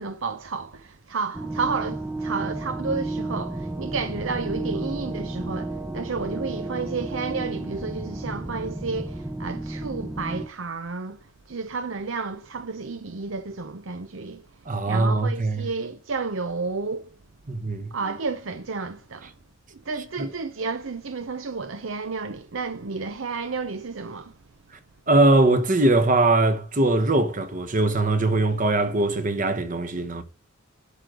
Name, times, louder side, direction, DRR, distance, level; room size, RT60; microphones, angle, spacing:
voice 1, 0.0-14.4 14.9-17.1 17.9-19.3 19.7-24.3, right 4 dB, 70° right, 0.7 m, -31 dB
sound 1, 1.3-10.5, right 2 dB, 10° right, 0.6 m, -32 dB
voice 2, 14.7-15.7 17.5-17.9 20.2-20.3 25.1-30.2, right 2 dB, 40° right, 1.1 m, -21 dB
11.5 x 3.9 x 6.3 m
head